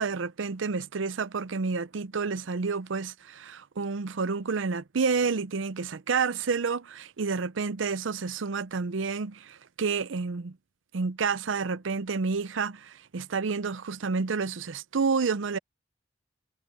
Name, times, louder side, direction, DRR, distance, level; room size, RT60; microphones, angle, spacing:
voice 1, 0.0-10.6 10.9-15.6, right 5 dB, 85° right, 0.6 m, -29 dB
head